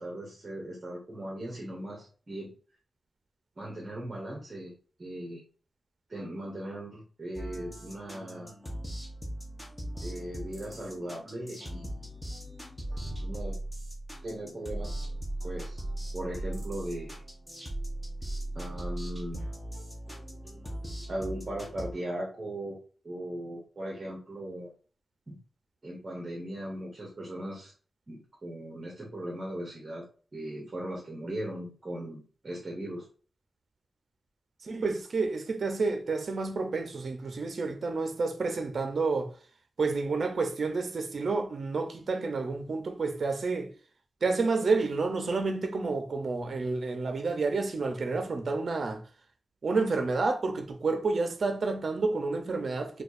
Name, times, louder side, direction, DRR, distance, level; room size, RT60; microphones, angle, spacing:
voice 1, 0.0-2.5 3.6-4.7 5.0-5.4 6.1-8.5 10.0-12.1 13.2-13.6 14.2-14.9 15.4-15.8 16.1-17.2 18.5-19.5 21.1-22.8 23.0-24.7 25.3-25.4 25.8-27.7 28.1-30.0 30.3-33.1, right 1 dB, 25° right, 0.9 m, -38 dB
sound 1, 7.3-21.9, right 1 dB, 5° left, 0.6 m, -38 dB
voice 2, 34.6-39.3 39.8-43.7 44.2-49.0 49.6-53.0, right 3 dB, 50° right, 0.5 m, -29 dB
4.5 x 2.3 x 2.5 m
wide cardioid pair, 175°, 0 cm